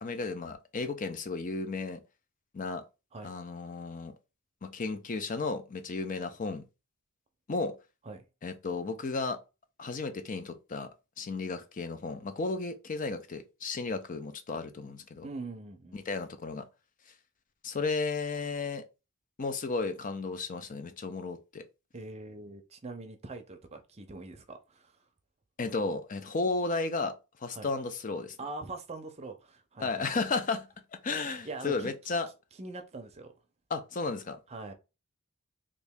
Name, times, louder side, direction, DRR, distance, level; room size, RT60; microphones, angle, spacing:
voice 1, 0.0-2.0 2.5-2.8 3.2-4.1 4.6-6.6 7.5-7.7 8.4-9.4 9.8-10.9 11.2-15.3 15.9-16.6 17.6-18.8 19.4-21.6 25.6-27.1 27.4-28.4 29.8-30.6 30.9-32.3 33.7-34.4, left 3 dB, 35° left, 0.5 m, -33 dB
voice 2, 15.2-16.0 21.9-24.9 27.5-27.7 28.4-30.2 31.1-31.9 32.6-33.3 34.5-34.7, right 3 dB, 30° right, 0.6 m, -43 dB
3.1 x 2.6 x 3.5 m
head